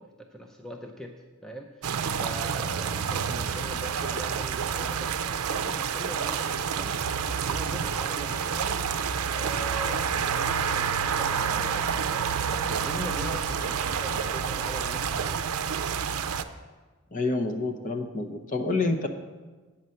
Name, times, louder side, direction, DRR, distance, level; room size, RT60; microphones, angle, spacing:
voice 1, 0.0-7.0 7.4-8.9 9.3-15.4, equal, ahead, 2 dB, 0.5 m, -41 dB
sound 1, 1.8-16.4, right 7 dB, 85° right, 0.5 m, -29 dB
voice 2, 17.1-19.1, left 3 dB, 35° left, 5 dB, 0.8 m, -28 dB
8.7 x 5.5 x 7.6 m, 1.3 s
head